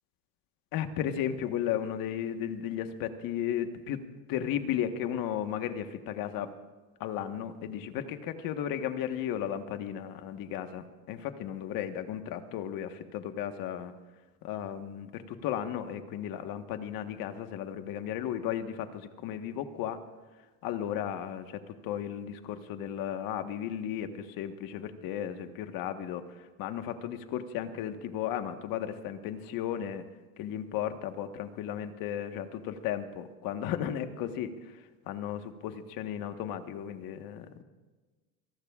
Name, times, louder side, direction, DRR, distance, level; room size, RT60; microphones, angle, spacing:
voice 1, 0.7-4.0 4.3-6.5 7.0-13.9 14.4-20.0 20.6-26.2 26.6-30.0 30.4-34.5 35.1-37.6, left 10 dB, 55° left, 7 dB, 1.4 m, -35 dB
26.5 x 18.5 x 2.5 m, 1.3 s
supercardioid pair, 130°, 42 cm